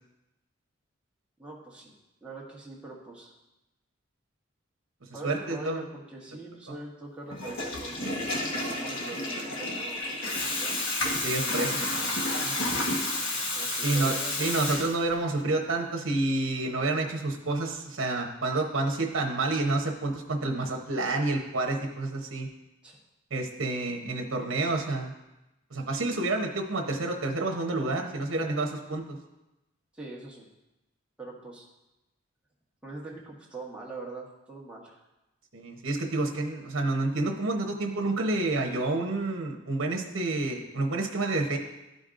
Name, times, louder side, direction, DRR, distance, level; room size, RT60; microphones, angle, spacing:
voice 1, 1.4-1.9 2.2-3.3 5.1-10.8 11.4-11.8 13.5-14.6 22.8-23.0 29.9-30.4 31.2-31.7 32.8-35.0, right 2 dB, 5° right, -5 dB, 1.3 m, -43 dB
voice 2, 5.2-5.8 6.7-6.8 11.2-12.5 13.8-22.5 23.3-25.1 25.7-29.2 35.5-41.6, right 2 dB, 80° right, 2 dB, 0.9 m, -29 dB
Water tap faucet / Toilet flush, 7.3-15.3, left 2 dB, 80° left, 1.3 m, -30 dB
12.5 x 5.2 x 2.5 m, 0.96 s
head